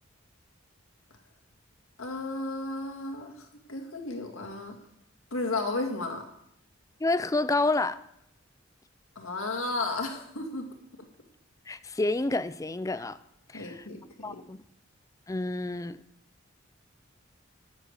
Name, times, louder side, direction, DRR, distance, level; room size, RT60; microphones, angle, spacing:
voice 1, 2.0-4.8 5.3-6.3 9.2-10.7 13.5-14.4, left 2 dB, 85° left, 4 dB, 2.1 m, -33 dB
voice 2, 7.0-8.0 11.7-13.2 13.5-13.9 14.2-14.6 15.3-16.0, left 2 dB, 15° left, 14 dB, 0.4 m, -29 dB
13.0 x 7.6 x 6.5 m, 0.76 s
head